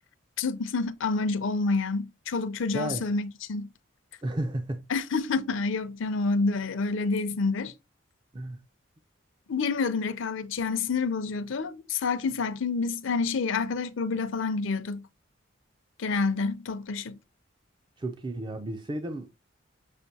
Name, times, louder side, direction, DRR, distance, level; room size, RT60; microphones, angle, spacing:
voice 1, 0.4-3.7 4.9-7.7 9.5-15.1 16.0-17.2, left 4 dB, 70° left, 0.5 m, -28 dB
voice 2, 2.7-3.1 4.2-4.9 8.3-8.6 18.0-19.3, right 1 dB, 20° right, 0.3 m, -33 dB
6.4 x 2.5 x 2.7 m
head